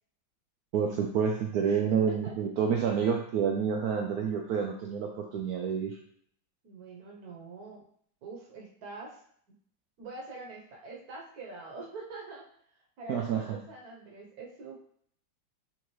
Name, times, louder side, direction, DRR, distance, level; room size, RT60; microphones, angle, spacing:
voice 1, 0.7-6.0 13.1-13.6, right 7 dB, 80° right, 2 dB, 0.8 m, -28 dB
voice 2, 1.6-2.4 6.6-7.8 8.2-9.2 10.0-12.5 12.8-14.8, right 3 dB, 55° right, -1 dB, 1.3 m, -44 dB
4.4 x 3.5 x 3.1 m, 0.62 s
omnidirectional pair, 2.1 m